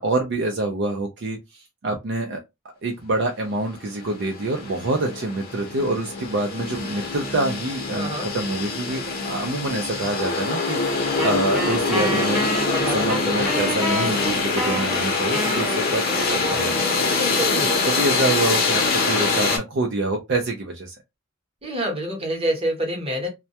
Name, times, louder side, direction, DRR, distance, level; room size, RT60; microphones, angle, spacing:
voice 1, 0.0-2.4 2.8-12.4 12.9-16.0 16.3-16.7 17.8-20.9, right 2 dB, 55° right, 0.4 m, -26 dB
sound 1, 3.6-3.7 4.0-19.6, left 4 dB, 45° left, 0.7 m, -24 dB
voice 2, 7.9-8.3 12.7-13.6 16.9-17.8 21.6-23.3, right 1 dB, 30° right, 0.8 m, -27 dB
Wind instrument woodwind instrument, 11.2-17.5, right 1 dB, 5° right, 0.7 m, -29 dB
2.2 x 2.1 x 2.7 m
head